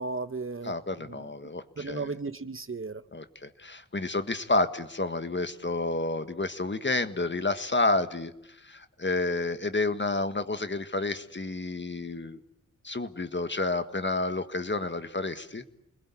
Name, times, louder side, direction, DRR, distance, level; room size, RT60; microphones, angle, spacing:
voice 1, 0.0-0.7 1.1-1.3 1.8-3.0, right 3 dB, 40° right, 0.9 m, -35 dB
voice 2, 0.6-2.1 3.1-12.4 12.8-15.6, left 2 dB, 35° left, 1.7 m, -30 dB
29.5 x 21.0 x 8.5 m
wide cardioid pair, 90°, 32 cm